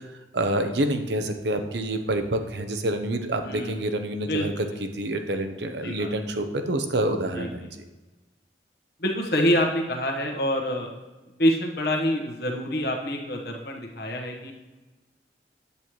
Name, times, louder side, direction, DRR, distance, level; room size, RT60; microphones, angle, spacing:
voice 1, 0.3-4.6 4.9-7.8, right 1 dB, 75° right, 7 dB, 0.8 m, -27 dB
voice 2, 3.4-3.8 4.2-4.5 5.8-6.1 7.3-7.5 9.0-10.9 11.4-14.5, equal, 60° left, 1 dB, 1.2 m, -26 dB
8.6 x 8.3 x 3.1 m, 1.2 s
head